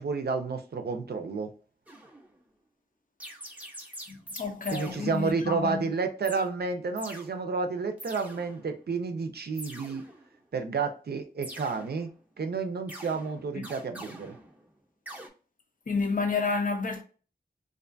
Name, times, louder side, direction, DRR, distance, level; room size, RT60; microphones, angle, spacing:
voice 1, 0.0-1.5 4.7-10.0 10.5-12.1 12.4-14.4, right 4 dB, 80° right, 0.4 m, -31 dB
sound 1, 1.9-2.4 3.2-5.5 6.2-6.5 7.0-7.3 8.0-8.8 9.5-10.4 11.4-12.3 12.9-14.8 15.1-15.3, right 1 dB, 10° right, 0.6 m, -45 dB
voice 2, 4.1-5.9 13.5-13.6 15.9-17.0, left 4 dB, 55° left, 0.6 m, -30 dB
2.5 x 2.2 x 2.5 m
wide cardioid pair, 55°, 17 cm